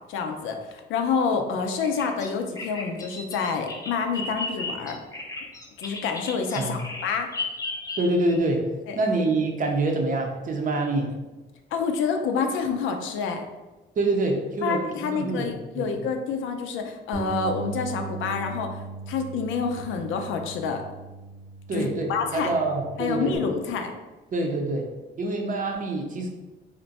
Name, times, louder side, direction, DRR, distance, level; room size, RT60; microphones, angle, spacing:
voice 1, 0.1-5.0 5.8-7.3 8.9-9.0 11.7-13.4 14.6-20.8 21.7-22.5 23.0-23.9, left 5 dB, 80° left, 5 dB, 0.4 m, -28 dB
Bird vocalization bird call bird song, 1.8-8.4, left 3 dB, 15° left, 0.6 m, -35 dB
voice 2, 8.0-8.7 9.0-11.2 14.0-16.1 21.7-23.3 24.3-24.9 25.2-26.3, right 2 dB, 40° right, 2 dB, 0.6 m, -26 dB
Bass guitar, 17.1-23.4, right 5 dB, 75° right, 0.8 m, -39 dB
2.5 x 2.1 x 4.0 m, 1.1 s
cardioid pair, 90°, 20 cm